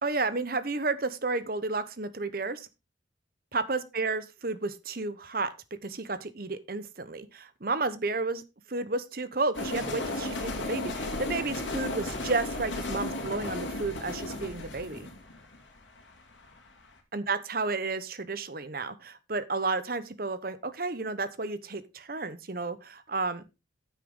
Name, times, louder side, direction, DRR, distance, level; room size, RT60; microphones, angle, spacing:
voice 1, 0.0-2.7 3.5-5.5 5.8-8.4 8.7-15.1 17.1-23.4, right 3 dB, 50° right, 13 dB, 1.0 m, -32 dB
sound 1, 9.5-16.6, left 2 dB, 75° left, 2.6 m, -34 dB
10.0 x 8.3 x 3.7 m, 0.26 s
head